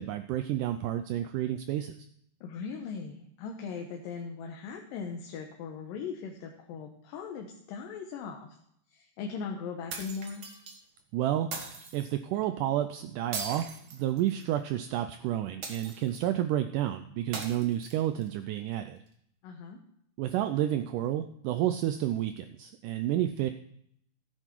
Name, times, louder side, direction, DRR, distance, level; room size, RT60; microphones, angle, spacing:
voice 1, 0.0-2.0 11.1-11.5 11.9-19.0 20.2-23.5, right 12 dB, 80° right, 9 dB, 1.9 m, -30 dB
voice 2, 2.4-8.6 8.9-10.5 19.4-19.8, left 5 dB, 75° left, 2 dB, 2.6 m, -39 dB
sound 1, 9.9-10.8 11.5-12.1 13.3-14.5 15.6-16.3 17.3-18.3, right 4 dB, 55° right, 1.4 m, -40 dB
14.0 x 8.1 x 4.5 m, 0.71 s
omnidirectional pair, 4.1 m